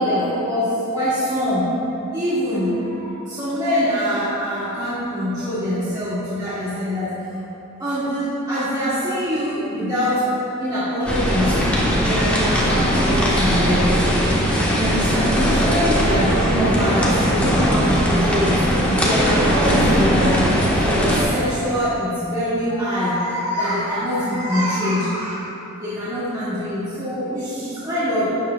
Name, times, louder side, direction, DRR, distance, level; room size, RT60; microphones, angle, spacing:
voice 1, 0.0-1.8 2.1-7.1 7.8-13.9 14.7-18.6 19.0-25.4 25.8-28.3, equal, 20° right, -14 dB, 2.0 m, -24 dB
sound 1, 11.1-21.2, equal, 5° left, 1.3 m, -19 dB
12.5 x 9.6 x 2.3 m, 2.9 s
head